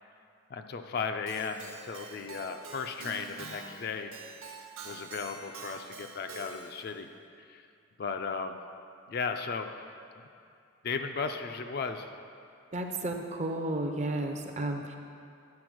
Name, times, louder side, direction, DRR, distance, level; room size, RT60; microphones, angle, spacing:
voice 1, 0.5-4.1 4.8-7.1 7.5-7.6 8.0-8.6 9.1-9.7 10.8-12.1, left 5 dB, 45° left, 7 dB, 0.3 m, -35 dB
Keyboard (musical), 1.3-6.9, right 4 dB, 70° right, 1.0 m, -46 dB
voice 2, 12.7-15.0, right 2 dB, 30° right, 4 dB, 0.5 m, -32 dB
9.5 x 4.2 x 6.1 m, 2.4 s
head